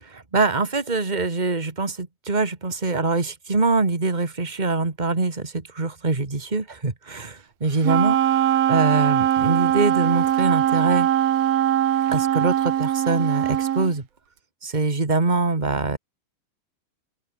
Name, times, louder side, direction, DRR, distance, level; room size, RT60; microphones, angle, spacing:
voice 1, 0.3-11.1 12.1-14.0 14.6-16.0, right 3 dB, 25° right, 0.9 m, -24 dB
Wind instrument woodwind instrument, 7.8-13.9, right 11 dB, 65° right, 3.5 m, -21 dB
open air
omnidirectional pair, 4.8 m